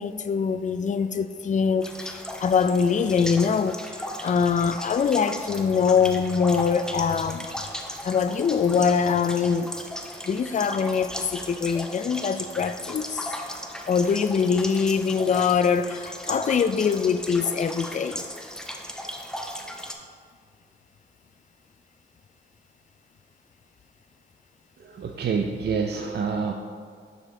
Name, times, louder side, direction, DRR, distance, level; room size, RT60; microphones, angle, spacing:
voice 1, 0.0-3.8 4.2-7.5 8.0-9.7 10.3-13.3 13.9-18.2, left 6 dB, 40° left, 11 dB, 0.4 m, -23 dB
sound 1, 1.8-19.9, equal, 5° left, 0.7 m, -37 dB
voice 2, 24.8-26.5, right 5 dB, 55° right, 2 dB, 0.5 m, -27 dB
6.6 x 4.9 x 3.7 m, 2.1 s
cardioid pair, 60°, 20 cm